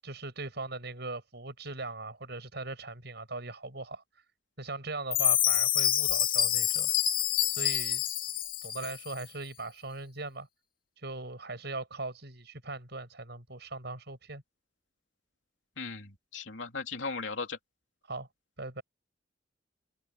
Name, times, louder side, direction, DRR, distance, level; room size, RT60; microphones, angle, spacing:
voice 1, 0.0-4.0 4.6-6.9 7.6-8.0 8.6-10.5 11.0-14.4 18.1-18.3 18.6-18.8, right 3 dB, 65° right, 7.7 m, -39 dB
Chime, 5.1-9.1, left 11 dB, 50° left, 2.6 m, -27 dB
voice 2, 15.8-17.6, left 4 dB, 85° left, 3.0 m, -37 dB
head